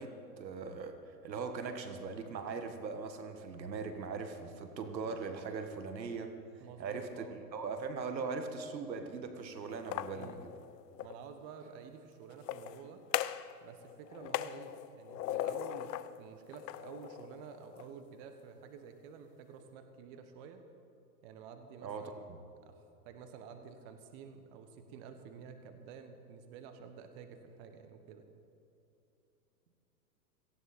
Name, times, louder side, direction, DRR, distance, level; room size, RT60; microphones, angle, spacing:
voice 1, 0.0-10.5 21.8-22.4, right 4 dB, 90° right, 7 dB, 1.7 m, -40 dB
voice 2, 6.6-7.3 10.1-10.4 11.0-13.0 13.6-20.6 21.2-22.2 22.6-22.8 23.0-28.2, right 6 dB, 35° right, 7 dB, 1.3 m, -50 dB
sound 1, 9.7-11.2 12.3-13.5 13.8-16.1 16.5-17.9, left 12 dB, 70° left, 0.7 m, -39 dB
17.5 x 15.5 x 4.3 m, 2.7 s
hypercardioid pair, 135°, 50 cm